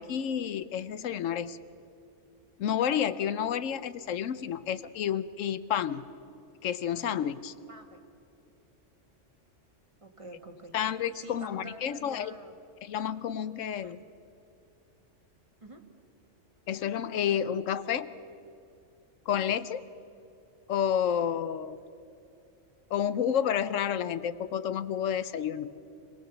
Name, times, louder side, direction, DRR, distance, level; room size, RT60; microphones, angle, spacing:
voice 1, 0.0-1.6 2.6-6.0 6.6-7.5 10.7-12.3 12.8-14.0 16.7-18.1 19.3-19.8 20.7-21.8 22.9-25.7, left 9 dB, 85° left, 14 dB, 1.1 m, -30 dB
voice 2, 7.7-8.0 10.0-12.5 13.8-14.0 15.6-15.9, equal, 25° right, 3 dB, 1.8 m, -48 dB
26.5 x 18.5 x 7.0 m, 2.7 s
omnidirectional pair, 1.3 m